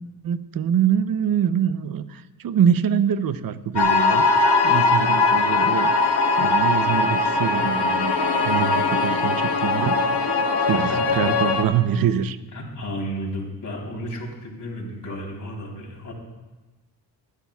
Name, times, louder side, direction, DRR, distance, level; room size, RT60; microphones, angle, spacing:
voice 1, 0.2-4.2 4.6-8.1 8.4-12.4, right 8 dB, 50° right, 13 dB, 0.7 m, -24 dB
sound 1, 3.8-11.6, left 3 dB, 60° left, 1.7 m, -20 dB
voice 2, 10.7-11.2 12.5-16.1, equal, 40° left, -1 dB, 3.8 m, -32 dB
24.0 x 11.5 x 2.4 m, 1.2 s
cardioid pair, 100°, 45 cm